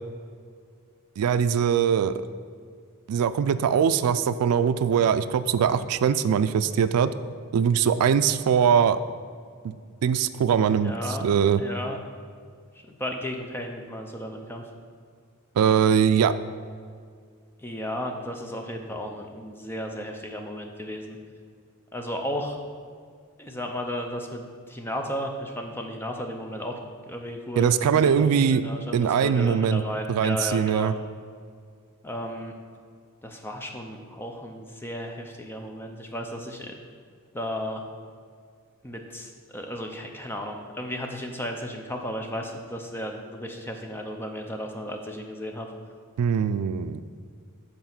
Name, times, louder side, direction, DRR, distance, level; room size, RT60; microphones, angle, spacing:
voice 1, 1.2-2.2 3.1-7.1 7.5-9.0 9.6-9.8 10.0-11.6 15.6-16.3 27.6-28.6 28.9-29.8 30.1-30.9 46.2-47.0, right 7 dB, 85° right, 13 dB, 0.3 m, -22 dB
voice 2, 10.7-11.2 11.6-12.0 12.9-14.6 17.6-21.2 21.9-22.6 23.4-26.8 27.1-27.7 28.0-30.9 32.0-32.5 33.2-36.8 37.3-37.8 38.8-45.7, equal, 10° left, 3 dB, 0.6 m, -34 dB
7.9 x 4.1 x 5.9 m, 2.1 s
head